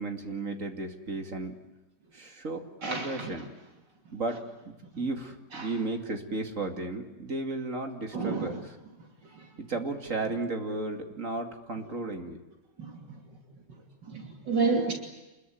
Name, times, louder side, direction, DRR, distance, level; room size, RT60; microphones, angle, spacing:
voice 1, 0.0-1.5 2.1-3.5 4.1-8.7 9.6-12.4, right 3 dB, 45° right, 2.8 m, -34 dB
voice 2, 2.8-3.3 4.9-5.0 5.5-5.7 8.1-8.6 9.3-9.5 12.8-13.2 14.1-14.9, right 4 dB, 75° right, 3.5 m, -30 dB
27.5 x 21.5 x 9.4 m
omnidirectional pair, 1.9 m